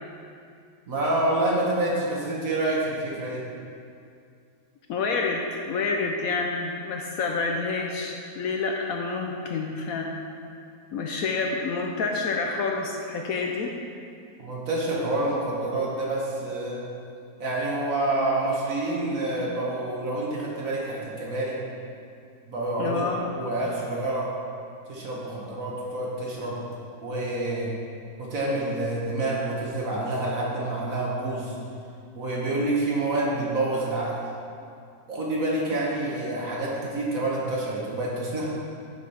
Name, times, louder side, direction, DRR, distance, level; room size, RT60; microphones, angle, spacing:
voice 1, 0.9-3.4 14.4-16.8 17.4-21.6 22.5-23.0 23.4-24.3 24.9-26.6 27.0-27.7 28.2-31.5 32.1-34.2 35.1-38.5, right 2 dB, 55° right, -4 dB, 1.7 m, -27 dB
voice 2, 4.9-10.1 10.9-13.7 22.8-23.3 35.7-35.8, left 4 dB, 65° left, 1 dB, 1.0 m, -28 dB
8.2 x 4.8 x 5.5 m, 2.4 s
omnidirectional pair, 1.8 m